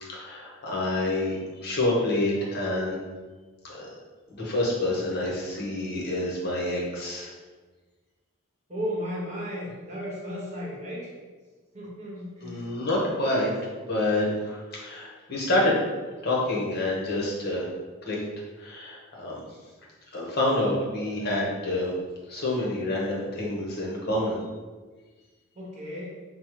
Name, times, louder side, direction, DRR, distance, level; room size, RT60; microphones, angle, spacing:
voice 1, 0.1-3.0 3.6-3.9 4.3-7.3 12.4-13.5 13.9-15.7 16.2-17.6 18.1-18.2 18.6-19.4 20.1-21.9 22.3-24.4, left 1 dB, 50° left, -4 dB, 0.9 m, -27 dB
voice 2, 8.7-11.1 11.7-12.7 25.5-26.2, equal, 35° right, -5 dB, 0.9 m, -34 dB
5.1 x 2.0 x 3.0 m, 1.3 s
head